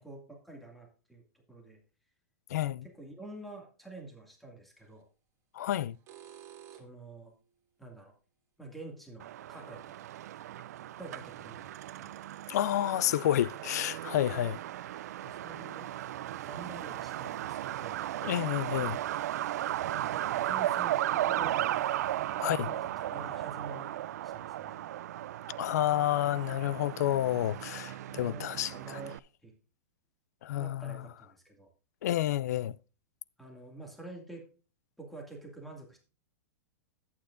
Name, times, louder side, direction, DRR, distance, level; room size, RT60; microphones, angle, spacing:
voice 1, 0.0-1.8 2.8-5.0 6.7-7.3 7.8-8.1 8.6-10.0 11.0-12.1 15.2-15.9 16.4-18.0 19.9-21.9 22.4-24.8 28.0-29.1 29.4-29.5 30.6-31.7 33.4-34.4 35.0-36.0, right 2 dB, ahead, 2.1 m, -47 dB
voice 2, 2.5-2.9 5.5-6.0 12.5-14.6 18.2-19.0 22.4-22.7 25.6-28.7 30.4-31.0 32.0-32.8, left 13 dB, 75° left, 0.4 m, -29 dB
sound 1, 4.8-5.0 5.8-7.1 9.8-9.9 10.6-10.7 11.1-11.2 11.6-11.7, right 10 dB, 30° right, 2.0 m, -52 dB
Truck, 9.2-29.2, right 13 dB, 70° right, 0.4 m, -36 dB
11.5 x 8.8 x 2.5 m
hypercardioid pair, 145°, 9 cm